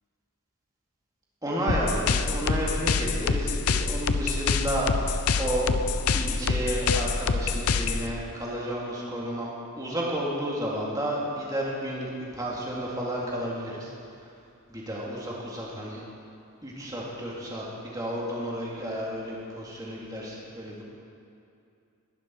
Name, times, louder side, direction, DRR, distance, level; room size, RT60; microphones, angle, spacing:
voice 1, 1.4-5.7 6.1-9.5 9.8-13.9 14.7-16.0 16.6-20.8, equal, 15° right, -5 dB, 2.9 m, -31 dB
sound 1, 1.7-8.1, left 4 dB, 90° left, 0.7 m, -26 dB
20.5 x 11.5 x 4.8 m, 2.5 s
head